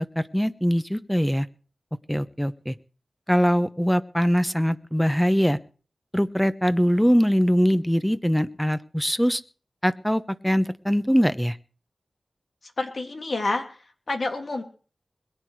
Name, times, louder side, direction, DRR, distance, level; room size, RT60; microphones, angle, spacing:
voice 1, 0.0-1.5 2.1-2.7 3.3-5.6 6.1-9.4 9.8-11.6, equal, 5° left, 13 dB, 1.1 m, -22 dB
voice 2, 12.8-13.8 14.1-14.6, left 2 dB, 65° left, 4 dB, 3.1 m, -28 dB
21.5 x 9.8 x 4.8 m, 0.39 s
wide cardioid pair, 60°, 0 cm